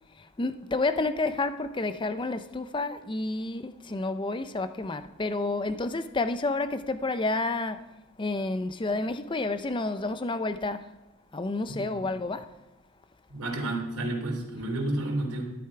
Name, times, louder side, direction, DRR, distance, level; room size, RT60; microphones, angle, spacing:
voice 1, 0.2-7.8 8.2-10.9 11.3-12.5, left 2 dB, 20° left, 0.5 m, -30 dB
voice 2, 13.3-15.4, right 2 dB, 80° right, 3.1 m, -30 dB
13.5 x 12.0 x 4.8 m
head